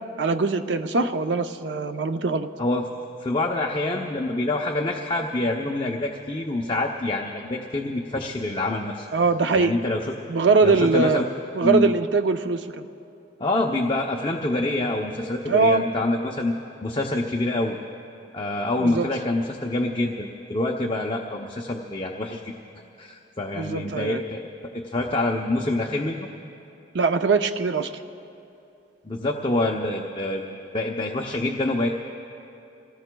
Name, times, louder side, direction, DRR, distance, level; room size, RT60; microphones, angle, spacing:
voice 1, 0.2-2.5 9.1-9.8 10.3-11.2 11.5-12.9 15.5-15.8 18.8-19.1 23.5-24.2 26.9-27.9, right 4 dB, 75° right, 8 dB, 0.6 m, -22 dB
voice 2, 3.2-9.1 9.5-10.1 10.6-11.3 11.6-11.9 13.4-16.5 16.8-17.8 18.3-22.5 23.0-24.5 24.7-26.3 29.0-30.5 30.7-31.9, left 2 dB, 25° left, 0 dB, 0.6 m, -26 dB
29.0 x 18.5 x 2.3 m, 2.8 s
head